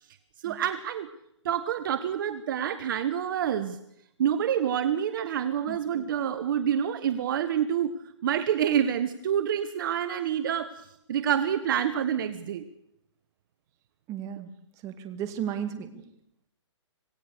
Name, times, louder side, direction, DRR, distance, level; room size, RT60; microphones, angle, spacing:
voice 1, 0.4-1.1 1.4-3.8 4.2-7.9 8.2-10.7 11.1-12.6, right 9 dB, 45° right, 12 dB, 1.4 m, -27 dB
voice 2, 14.1-14.5 14.8-15.9, right 9 dB, 20° right, 9 dB, 2.4 m, -34 dB
26.5 x 18.0 x 6.7 m, 0.77 s
hypercardioid pair, 150°, 15 cm